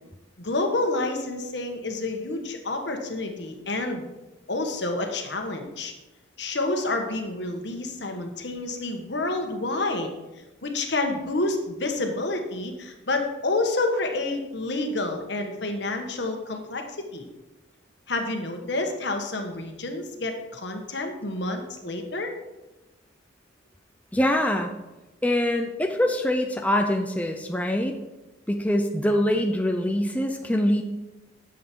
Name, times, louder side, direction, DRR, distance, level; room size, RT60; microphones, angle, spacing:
voice 1, 0.4-4.0 4.5-5.9 6.4-10.1 10.6-17.3 18.1-22.3, left 2 dB, 65° left, 4 dB, 1.4 m, -29 dB
voice 2, 24.1-24.7 25.2-27.9 28.5-30.8, left 1 dB, 10° left, 3 dB, 0.6 m, -24 dB
10.5 x 7.5 x 4.6 m, 1.1 s
head